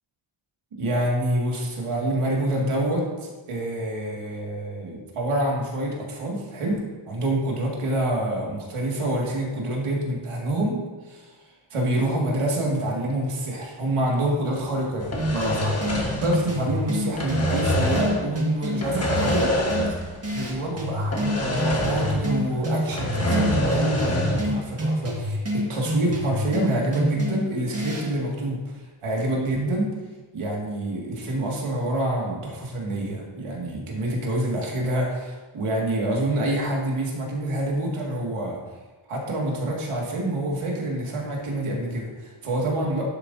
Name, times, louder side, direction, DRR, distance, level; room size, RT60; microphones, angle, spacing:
voice 1, 0.7-11.3 11.7-19.5 20.3-29.9 30.3-38.6 39.1-43.1, right 1 dB, 85° right, -2 dB, 2.0 m, -27 dB
sound 1, 15.0-16.8 17.0-18.3 18.8-20.2 20.4-20.5 21.1-22.4 22.7-24.5, equal, 30° left, 1.4 m, -26 dB
sound 2, 15.2-28.2, equal, 30° right, 1.7 m, -29 dB
11.0 x 7.8 x 2.7 m, 1.3 s
wide cardioid pair, 155°, 50 cm